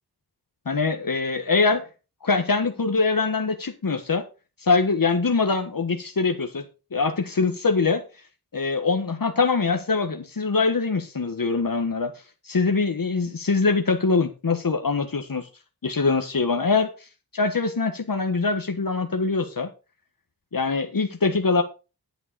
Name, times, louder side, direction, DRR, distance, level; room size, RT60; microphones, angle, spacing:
voice 1, 0.6-1.8 2.2-4.2 4.6-6.6 6.9-8.0 8.5-12.1 12.4-15.5 15.8-17.1 17.3-19.7 20.5-21.6, left 4 dB, 55° left, 5 dB, 1.5 m, -23 dB
11.5 x 8.1 x 4.2 m, 0.31 s
wide cardioid pair, 70°, 40 cm